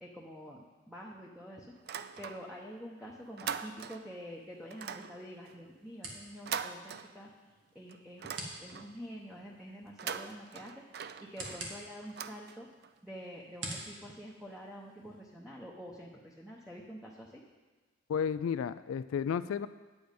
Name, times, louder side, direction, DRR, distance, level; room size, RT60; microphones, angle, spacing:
voice 1, 0.0-1.7 2.2-7.3 7.7-12.7 13.0-17.4, equal, 5° right, -3 dB, 0.8 m, -47 dB
sound 1, 1.8-2.7 3.0-4.2 4.7-7.5 7.9-9.0 9.8-12.9, right 7 dB, 50° right, 0.4 m, -42 dB
sound 2, 4.2-15.2, right 2 dB, 75° right, 1.7 m, -49 dB
voice 2, 18.1-19.7, left 7 dB, 90° left, 13 dB, 0.3 m, -32 dB
9.3 x 8.4 x 5.2 m, 1.3 s
head